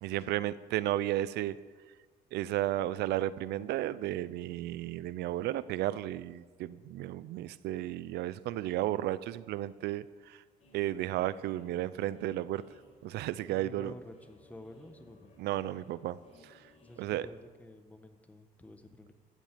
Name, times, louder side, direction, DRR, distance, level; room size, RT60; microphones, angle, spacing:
voice 1, 0.0-1.6 2.3-10.4 10.7-12.6 13.0-13.9 15.4-16.2 16.4-16.6 17.0-17.3, right 14 dB, 75° right, 18 dB, 0.6 m, -33 dB
sound 1, 10.6-17.5, left 2 dB, 40° left, 4.5 m, -61 dB
voice 2, 13.5-15.3 16.8-19.1, left 1 dB, 10° left, 8 dB, 1.2 m, -50 dB
14.5 x 8.2 x 7.5 m, 1.4 s
cardioid pair, 110°, 17 cm